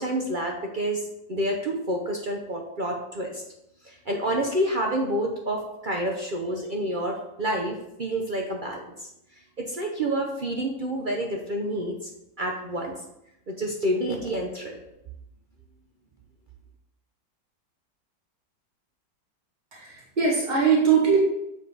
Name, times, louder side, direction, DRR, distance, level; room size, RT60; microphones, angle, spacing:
voice 1, 0.0-3.4 3.8-8.9 9.6-12.1 12.4-12.9 13.5-14.8, right 1 dB, 55° right, 1 dB, 0.5 m, -28 dB
voice 2, 19.7-21.2, right 6 dB, 25° right, -4 dB, 2.0 m, -21 dB
7.4 x 4.9 x 4.0 m, 0.81 s
omnidirectional pair, 2.0 m